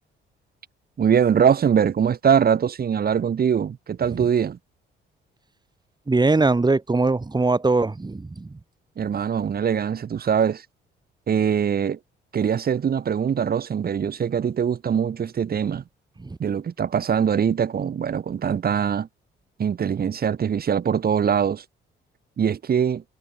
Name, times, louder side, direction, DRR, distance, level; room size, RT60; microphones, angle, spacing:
voice 1, 1.0-4.6 9.0-10.6 11.3-12.0 12.3-15.8 16.4-19.1 19.6-21.6 22.4-23.0, right 7 dB, 50° right, 2.5 m, -22 dB
voice 2, 6.1-8.6 16.2-16.4, right 3 dB, 20° right, 5.9 m, -21 dB
cardioid pair, 90°, 20 cm